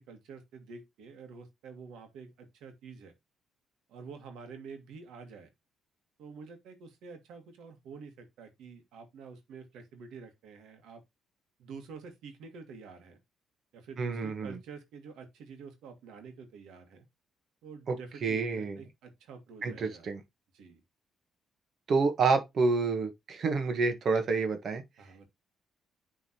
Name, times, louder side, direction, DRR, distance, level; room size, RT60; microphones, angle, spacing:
voice 1, 0.1-3.1 3.9-5.5 6.2-11.0 11.6-13.2 13.7-17.1 17.6-20.1 20.5-20.8 25.0-25.3, right 5 dB, 85° right, 1.7 m, -48 dB
voice 2, 14.0-14.6 17.9-18.0 18.2-18.8 19.6-20.2 21.9-24.8, right 4 dB, 55° right, 1.5 m, -28 dB
9.8 x 3.7 x 2.9 m
cardioid pair, 90°, 0 cm